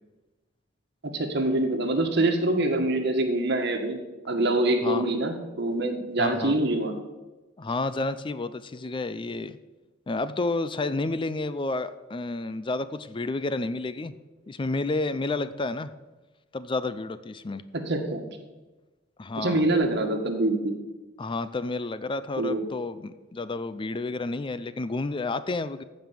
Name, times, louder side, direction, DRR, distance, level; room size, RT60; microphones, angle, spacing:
voice 1, 1.1-4.0 4.3-6.9 17.9-18.3 19.4-20.7 22.4-22.6, right 2 dB, 60° right, 4 dB, 1.7 m, -25 dB
voice 2, 6.2-6.6 7.6-9.6 10.1-14.1 14.5-15.9 16.5-17.6 19.2-19.7 21.2-25.8, left 3 dB, 25° left, 13 dB, 0.4 m, -30 dB
15.0 x 5.4 x 7.5 m, 1.2 s
head